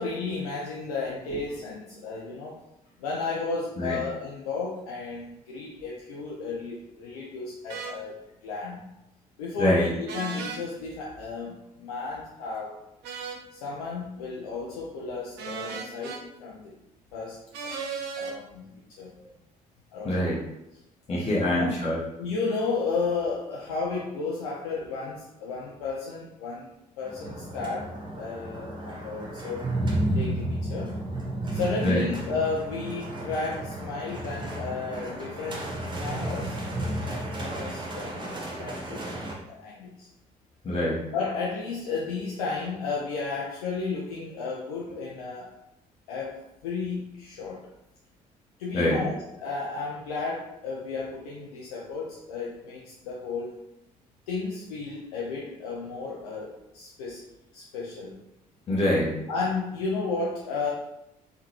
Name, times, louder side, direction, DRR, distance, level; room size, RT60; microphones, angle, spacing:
voice 1, 0.0-2.6 3.0-8.2 8.4-8.9 9.4-12.8 13.5-16.7 17.1-17.8 18.2-18.6 19.0-19.1 19.9-20.2 21.4-21.7 22.2-26.7 27.0-27.9 28.2-29.8 30.1-30.9 31.5-35.7 36.0-36.6 37.3-38.3 38.6-40.1 41.1-45.5 46.1-47.6 48.6-53.5 54.3-57.2 57.5-58.2 59.3-60.7, left 4 dB, 70° left, -4 dB, 0.5 m, -33 dB
sound 1, 7.7-7.9 10.1-10.6 13.0-13.4 15.4-16.2 17.5-18.3, right 5 dB, 55° right, 0.5 m, -35 dB
voice 2, 20.0-20.4 21.1-22.0 31.8-32.1 40.6-41.0 48.7-49.0 58.7-59.2, left 1 dB, 30° left, -6 dB, 0.8 m, -24 dB
sound 2, 27.0-39.3, right 1 dB, 25° right, 0.8 m, -32 dB
3.7 x 2.2 x 2.9 m, 0.86 s
figure-of-eight pair, 45°, 20 cm